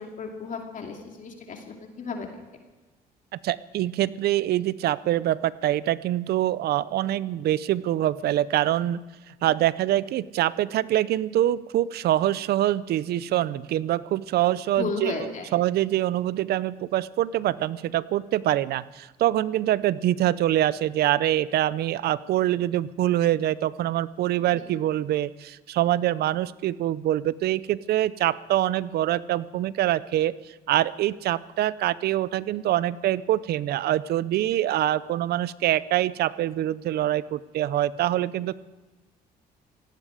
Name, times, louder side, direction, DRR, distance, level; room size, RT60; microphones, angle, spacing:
voice 1, 0.0-2.3 14.8-15.5 24.5-24.6, left 4 dB, 50° left, 2 dB, 2.6 m, -34 dB
voice 2, 3.4-9.0 9.4-30.3 30.7-38.5, right 13 dB, 70° right, 18 dB, 0.6 m, -25 dB
17.0 x 17.0 x 5.0 m, 1.2 s
cardioid pair, 90°, 17 cm